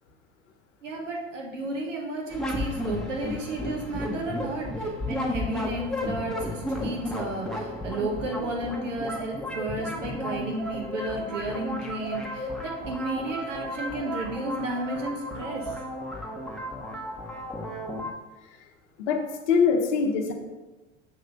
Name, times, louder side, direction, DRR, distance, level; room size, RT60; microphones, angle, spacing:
voice 1, 0.8-15.8, right 2 dB, 80° right, 0 dB, 1.1 m, -33 dB
sound 1, 2.3-18.1, left 1 dB, ahead, 0.9 m, -33 dB
voice 2, 19.0-20.3, left 5 dB, 70° left, 1 dB, 0.9 m, -23 dB
7.0 x 3.2 x 5.1 m, 1.2 s
hypercardioid pair, 80°, 37 cm